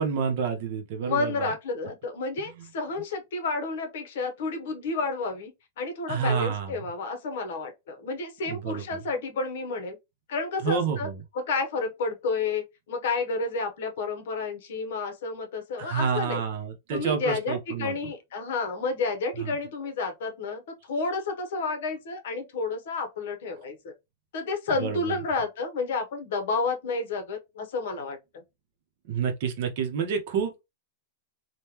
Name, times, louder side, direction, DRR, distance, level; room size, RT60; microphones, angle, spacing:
voice 1, 0.0-1.5 2.6-2.7 6.1-6.8 8.5-9.0 10.6-11.2 15.8-18.0 19.4-19.5 24.8-25.1 29.1-30.6, right 6 dB, 45° right, 0.7 m, -29 dB
voice 2, 1.0-5.5 5.8-10.0 10.3-11.1 11.3-16.4 16.9-20.6 20.9-23.9 24.3-28.2, left 3 dB, 60° left, 0.9 m, -30 dB
3.6 x 2.2 x 2.9 m
supercardioid pair, 175°, 0 cm